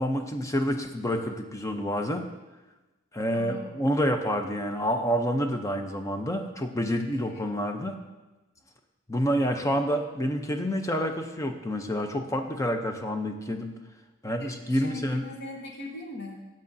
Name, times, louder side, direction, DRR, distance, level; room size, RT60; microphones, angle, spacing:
voice 1, 0.0-2.2 3.1-8.0 9.1-13.7 14.2-15.3, equal, 15° left, 4 dB, 0.6 m, -28 dB
voice 2, 3.3-3.8 7.0-7.5 14.4-16.4, left 1 dB, 55° left, 0 dB, 1.1 m, -41 dB
12.5 x 7.6 x 2.7 m, 1.1 s
head